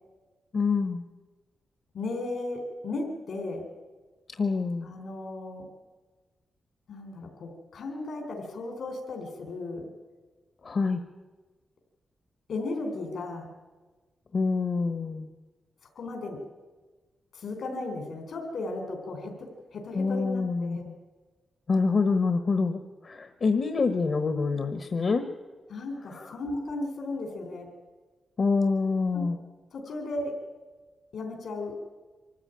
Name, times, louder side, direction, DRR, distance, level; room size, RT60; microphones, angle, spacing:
voice 1, 0.5-1.0 4.4-4.9 10.6-11.0 14.3-15.3 19.9-20.9 21.7-25.2 26.1-26.4 28.4-29.4, left 4 dB, 55° left, 9 dB, 1.3 m, -26 dB
voice 2, 1.9-3.7 4.8-5.7 6.9-9.9 12.5-13.5 16.0-16.4 17.3-20.8 25.7-27.7 29.1-29.3 29.7-30.4 31.1-31.8, left 2 dB, 80° left, 3 dB, 3.6 m, -35 dB
24.0 x 14.0 x 9.1 m, 1.3 s
cardioid pair, 85°, 0 cm